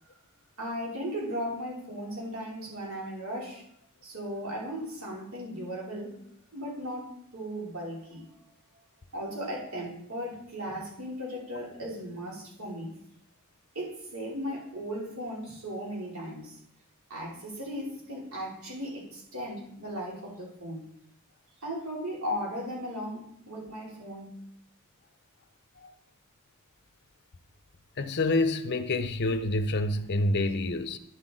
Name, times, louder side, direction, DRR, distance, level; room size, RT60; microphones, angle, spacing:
voice 1, 0.6-3.6 4.0-6.2 6.5-8.2 9.1-12.9 13.7-16.6 17.1-20.8 21.6-24.4, equal, 65° right, 3.1 m, -36 dB
voice 2, 28.0-31.0, left 2 dB, 50° left, 0.6 m, -27 dB
11.0 x 6.0 x 3.7 m
head